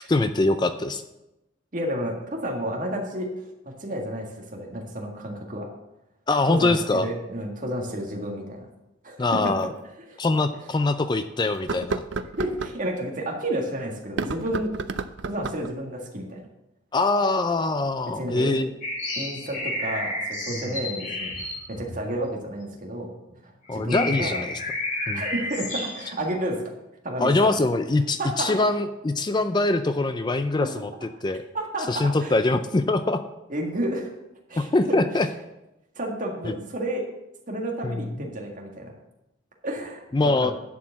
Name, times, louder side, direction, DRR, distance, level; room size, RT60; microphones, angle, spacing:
voice 1, 0.1-1.0 6.3-7.1 9.2-9.7 10.2-12.0 16.9-18.7 20.5-20.6 23.7-24.6 25.1-25.2 27.2-30.7 31.2-31.4 31.9-33.2 34.6-35.3 36.4-36.5 37.8-38.1 40.1-40.5, left 2 dB, 20° left, 9 dB, 0.4 m, -23 dB
voice 2, 1.7-3.3 3.7-5.7 6.4-8.7 9.0-9.5 10.1-10.2 12.4-14.7 15.3-16.5 18.2-18.6 19.2-23.2 23.4-24.4 25.1-26.6 27.0-27.6 28.2-28.6 31.5-32.3 33.5-34.1 34.5-35.2 36.0-37.1 37.5-38.9 39.6-40.0 40.4-40.5, right 1 dB, 45° right, 0 dB, 1.8 m, -31 dB
sound 1, 9.6-9.7 10.3-10.4 11.5-12.8 14.0-15.7, right 3 dB, 70° right, 0.5 m, -31 dB
sound 2, 18.8-22.7 23.3-23.4 23.7-26.2, left 1 dB, 45° left, 2.6 m, -31 dB
11.0 x 4.7 x 7.3 m, 0.94 s
head